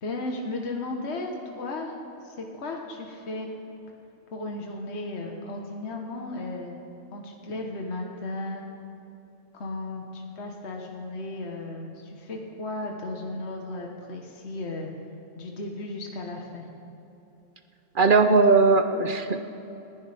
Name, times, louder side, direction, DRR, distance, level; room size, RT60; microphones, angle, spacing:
voice 1, 0.0-2.0 2.2-3.5 4.3-6.8 7.1-8.6 9.5-14.9 15.3-16.7, left 2 dB, 60° left, 1 dB, 1.5 m, -35 dB
voice 2, 18.0-19.4, right 4 dB, 45° right, 7 dB, 0.8 m, -19 dB
28.5 x 10.5 x 3.5 m, 3.0 s
omnidirectional pair, 1.3 m